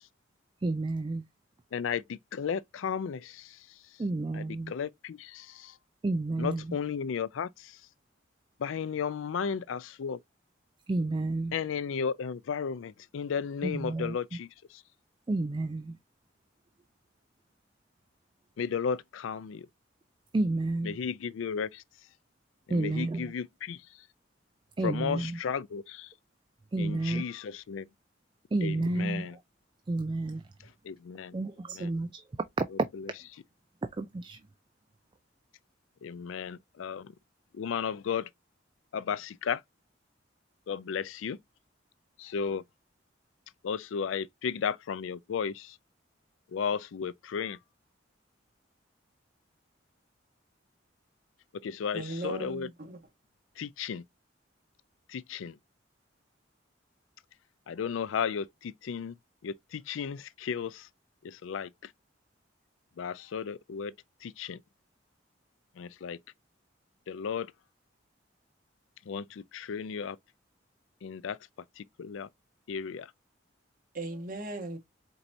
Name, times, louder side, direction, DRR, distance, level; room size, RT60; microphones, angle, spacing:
voice 1, 0.6-1.2 4.0-4.7 6.0-6.8 10.9-11.6 13.6-14.1 15.3-16.0 20.3-21.0 22.7-23.3 24.8-25.4 26.7-27.2 28.5-29.4 29.9-30.4 31.3-32.2 32.6-32.7 34.0-34.4, right 2 dB, 25° right, 0.3 m, -30 dB
voice 2, 1.7-3.6 4.3-5.7 6.4-7.8 8.6-10.2 11.5-14.5 18.6-19.7 20.8-21.8 22.7-23.8 24.8-26.1 26.8-27.9 28.6-29.4 30.8-31.3 31.7-31.9 36.0-37.1 37.6-38.3 38.9-39.6 40.7-41.4 42.2-42.6 43.6-45.8 46.5-47.6 51.6-52.7 53.6-54.0 55.1-55.6 57.7-59.1 59.4-60.9 61.2-61.7 63.0-63.9 64.2-64.6 65.8-66.2 67.1-67.5 69.1-70.2 71.0-71.4 71.8-72.3 72.7-73.1, left 6 dB, 85° left, 0.4 m, -34 dB
voice 3, 51.9-53.0 73.9-74.8, right 2 dB, 45° right, 1.5 m, -37 dB
4.5 x 4.0 x 2.6 m
head